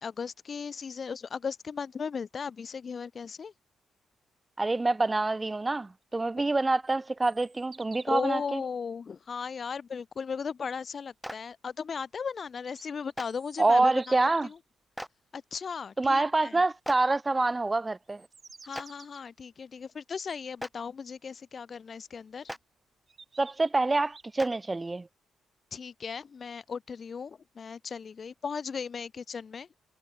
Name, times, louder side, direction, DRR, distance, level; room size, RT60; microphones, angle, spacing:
voice 1, 0.0-3.5 8.1-14.6 15.3-16.6 18.6-22.5 25.7-29.7, left 6 dB, 50° left, 0.9 m, -37 dB
voice 2, 4.6-8.6 13.6-14.5 16.0-18.2 23.4-25.1, right 2 dB, 25° right, 0.7 m, -26 dB
sound 1, 6.9-8.4 12.3-14.6 18.0-19.2 20.3-20.4 22.2-22.3 23.1-24.5, right 4 dB, 40° right, 4.1 m, -53 dB
Clapping, 11.2-11.3 13.1-13.3 15.0-15.1 16.8-17.0 18.7-18.8 20.6-20.7 22.5-22.6 24.4-24.5, equal, ahead, 1.4 m, -37 dB
cardioid pair, 65°, 0 cm